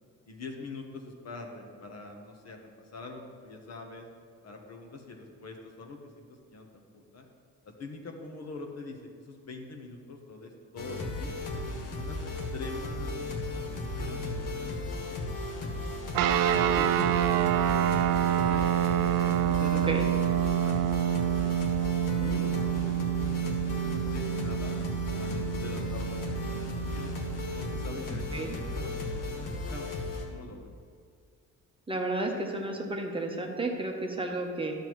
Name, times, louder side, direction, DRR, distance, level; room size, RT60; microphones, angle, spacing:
voice 1, 0.3-4.1 4.4-7.3 7.6-11.4 11.8-13.2 13.5-15.8 16.2-18.7 19.2-23.0 23.4-24.8 25.2-27.2 27.5-30.0 30.3-30.7, left 3 dB, 50° left, 3 dB, 1.1 m, -44 dB
sound 1, 10.8-30.2, left 2 dB, 75° left, 1.4 m, -35 dB
sound 2, 16.1-28.0, right 11 dB, 80° right, 0.5 m, -28 dB
voice 2, 28.1-28.6 31.9-34.7, right 2 dB, 15° right, 1 dB, 0.9 m, -32 dB
11.5 x 7.0 x 3.1 m, 2.1 s
cardioid pair, 105°, 33 cm